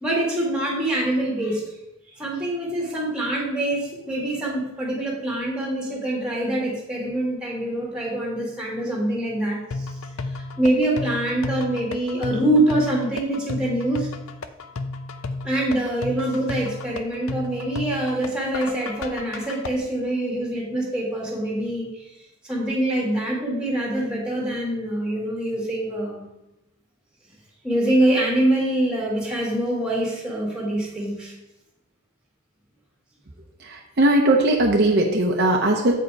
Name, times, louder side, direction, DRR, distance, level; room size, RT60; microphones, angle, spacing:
voice 1, 0.0-1.6 2.1-9.9 10.3-14.1 15.4-21.9 22.4-26.2 27.6-31.3, right 1 dB, 5° right, -3 dB, 1.9 m, -24 dB
sound 1, 9.7-19.7, left 3 dB, 75° left, 0.5 m, -33 dB
voice 2, 33.6-35.9, right 1 dB, 50° right, 1 dB, 0.8 m, -19 dB
7.9 x 5.0 x 4.7 m, 0.92 s
head